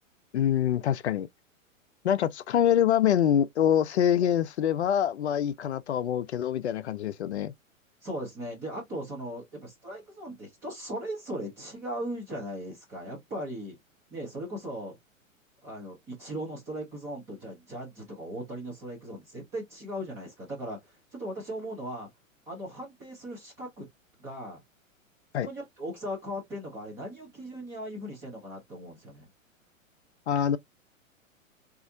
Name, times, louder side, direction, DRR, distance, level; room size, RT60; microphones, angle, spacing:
voice 1, 0.3-1.3 2.0-7.5 25.3-25.5 30.3-30.6, left 10 dB, 55° left, 0.5 m, -25 dB
voice 2, 8.0-13.8 14.1-15.0 15.6-20.8 21.1-22.1 22.5-23.9 24.2-24.6 25.4-29.3, equal, 5° right, 0.3 m, -38 dB
4.0 x 2.4 x 2.5 m
figure-of-eight pair, 105°, 40 cm